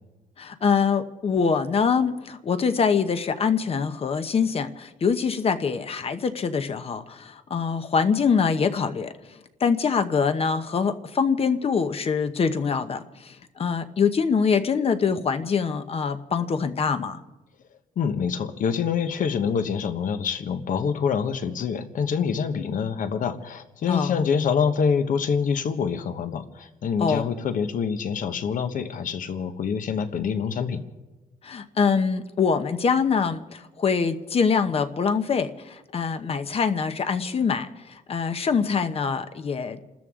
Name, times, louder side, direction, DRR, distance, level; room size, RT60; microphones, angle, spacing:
voice 1, 0.4-17.2 23.9-24.2 27.0-27.3 31.4-39.8, left 6 dB, 40° left, 10 dB, 0.9 m, -24 dB
voice 2, 18.0-30.8, left 6 dB, 60° left, 9 dB, 1.2 m, -26 dB
29.0 x 13.5 x 3.7 m, 1.1 s
cardioid pair, 120°, 15 cm